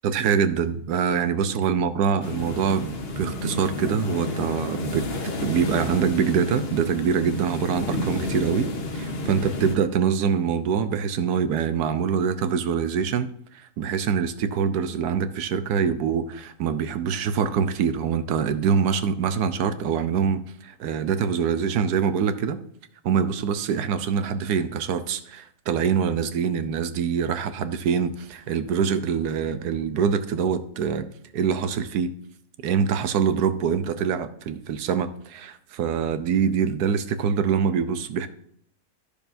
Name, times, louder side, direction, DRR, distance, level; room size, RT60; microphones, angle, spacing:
voice 1, 0.0-8.7 8.9-22.6 23.0-31.1 31.3-32.1 32.6-38.3, right 7 dB, 90° right, 10 dB, 1.3 m, -24 dB
sound 1, 2.2-9.8, left 1 dB, 45° left, 1.2 m, -30 dB
12.5 x 6.7 x 2.6 m, 0.67 s
omnidirectional pair, 1.7 m